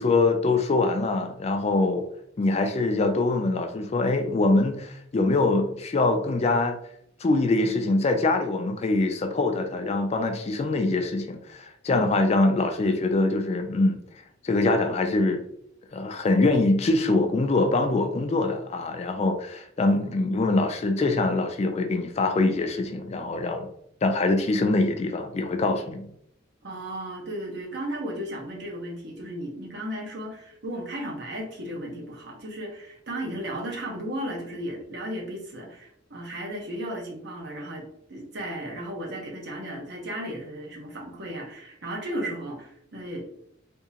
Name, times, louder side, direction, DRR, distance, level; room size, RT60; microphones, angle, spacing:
voice 1, 0.0-2.0 2.4-6.8 7.2-14.0 14.4-15.4 15.9-23.7 24.0-26.1, left 2 dB, 35° left, 0.3 m, -24 dB
voice 2, 26.6-43.2, right 1 dB, 60° right, 1.0 m, -35 dB
3.5 x 2.8 x 2.8 m
head